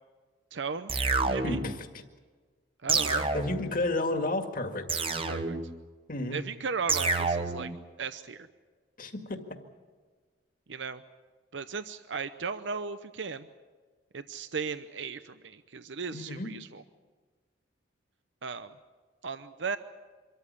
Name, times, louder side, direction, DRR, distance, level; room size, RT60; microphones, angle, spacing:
voice 1, 0.5-0.9 1.2-1.6 2.8-3.3 5.3-5.6 6.3-7.7 8.0-8.5 10.7-11.0 11.5-13.5 14.1-16.8 18.4-18.7 19.2-19.8, right 5 dB, 85° right, 11 dB, 0.7 m, -36 dB
sound 1, 0.9-1.8 2.9-3.8 4.9-5.8 6.9-7.8, right 4 dB, 30° right, 1.1 m, -29 dB
voice 2, 1.4-1.8 3.3-4.8 6.1-6.4 9.0-9.4 16.1-16.6, left 2 dB, 50° left, 5 dB, 2.0 m, -31 dB
25.5 x 13.5 x 9.8 m, 1.5 s
head